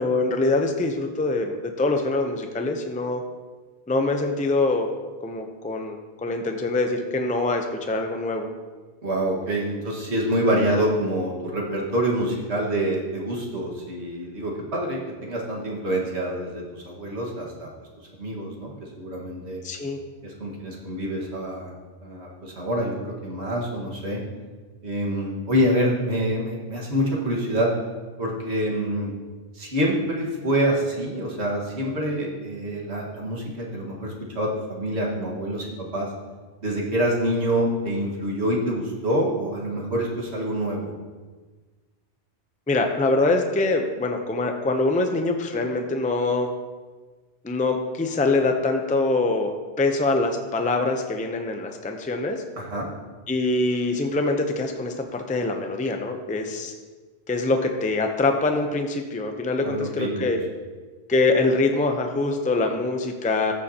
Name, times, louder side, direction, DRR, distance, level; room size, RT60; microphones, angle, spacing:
voice 1, 0.0-3.2 3.9-4.9 5.2-8.5 19.6-20.0 42.7-46.5 47.4-52.4 53.3-56.7 57.3-60.4 61.1-63.5, left 2 dB, 10° left, 4 dB, 0.5 m, -24 dB
voice 2, 9.0-17.7 18.2-19.6 20.2-21.7 22.0-24.2 24.8-27.7 28.2-29.1 29.5-36.1 36.6-40.9 52.6-52.9 59.6-60.3, equal, 75° right, -2 dB, 2.0 m, -26 dB
14.5 x 6.8 x 2.9 m, 1.4 s
omnidirectional pair, 1.1 m